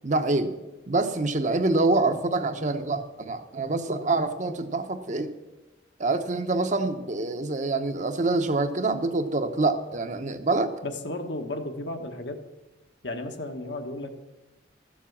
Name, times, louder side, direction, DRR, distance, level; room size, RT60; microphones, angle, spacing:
voice 1, 0.0-0.5 0.9-5.3 6.0-10.7, right 2 dB, 40° right, 8 dB, 0.8 m, -26 dB
voice 2, 10.8-12.4 13.0-14.2, left 1 dB, 70° left, 5 dB, 1.3 m, -34 dB
13.5 x 7.2 x 7.2 m, 1.1 s
head